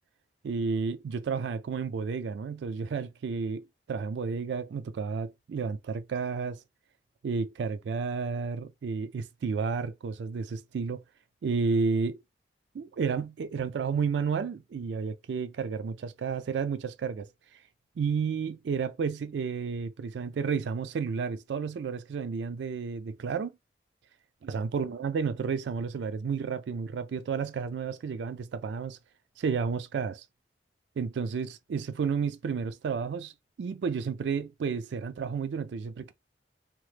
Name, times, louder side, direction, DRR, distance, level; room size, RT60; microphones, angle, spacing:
voice 1, 0.4-6.6 7.2-11.0 11.4-12.2 12.7-17.3 18.0-23.5 24.4-29.0 29.4-30.2 31.0-33.3 33.6-36.1, right 5 dB, 80° right, 0.3 m, -31 dB
2.9 x 2.0 x 3.2 m
head